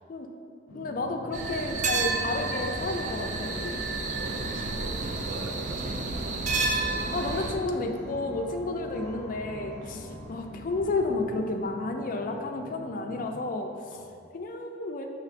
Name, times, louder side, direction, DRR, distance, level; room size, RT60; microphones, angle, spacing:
sound 1, 0.7-13.4, equal, 85° left, 0.6 m, -46 dB
voice 1, 0.7-3.8 7.1-13.7 14.3-15.1, left 2 dB, 45° left, 4 dB, 0.3 m, -31 dB
sound 2, 1.3-7.5, right 3 dB, 40° right, 0.3 m, -30 dB
sound 3, 3.7-11.6, equal, 55° right, 0.9 m, -47 dB
voice 2, 4.2-6.2 9.8-10.0 13.9-14.2, right 2 dB, 90° right, 1 dB, 0.6 m, -43 dB
6.4 x 2.9 x 2.5 m, 2.4 s
head